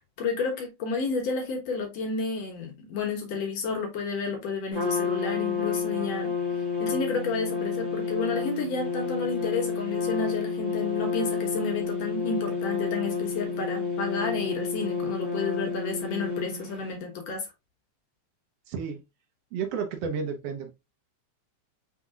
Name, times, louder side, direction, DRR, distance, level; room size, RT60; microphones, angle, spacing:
voice 1, 0.2-6.3 6.8-17.5, left 4 dB, 65° left, 2.1 m, -31 dB
Trumpet, 4.7-16.9, left 6 dB, 25° right, 1.0 m, -30 dB
voice 2, 18.7-19.0 19.5-20.7, right 6 dB, 70° right, 1.6 m, -31 dB
5.6 x 3.5 x 2.4 m
omnidirectional pair, 3.5 m